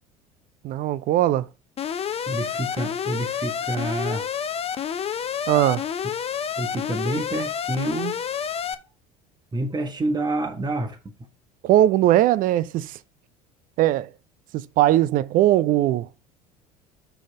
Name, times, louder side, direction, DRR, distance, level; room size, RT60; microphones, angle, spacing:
voice 1, 0.6-1.4 5.5-5.8 11.6-12.9 13.8-14.1 14.5-16.1, right 13 dB, 45° right, 0.5 m, -19 dB
Alarm, 1.8-8.7, left 8 dB, 30° left, 0.8 m, -29 dB
voice 2, 2.3-4.3 6.0-6.1 6.6-8.2 9.5-11.0, right 2 dB, 20° right, 1.7 m, -28 dB
6.3 x 5.7 x 4.2 m
figure-of-eight pair, 65°, 19 cm